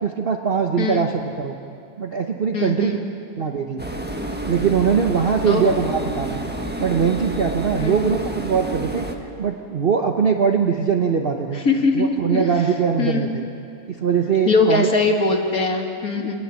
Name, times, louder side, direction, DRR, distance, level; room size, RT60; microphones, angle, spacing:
voice 1, 0.0-1.6 2.0-3.0 3.4-3.8 4.4-6.4 6.8-11.6 11.9-13.4 13.9-14.9 16.1-16.3, right 6 dB, 40° right, 3 dB, 1.1 m, -21 dB
voice 2, 2.5-3.0 5.5-5.7 7.7-8.0 11.7-12.5 13.0-13.3 14.5-16.4, left 3 dB, 60° left, 2 dB, 2.5 m, -21 dB
sound 1, 3.8-9.2, right 1 dB, 5° right, 1.3 m, -29 dB
27.0 x 19.5 x 7.5 m, 2.5 s
omnidirectional pair, 1.8 m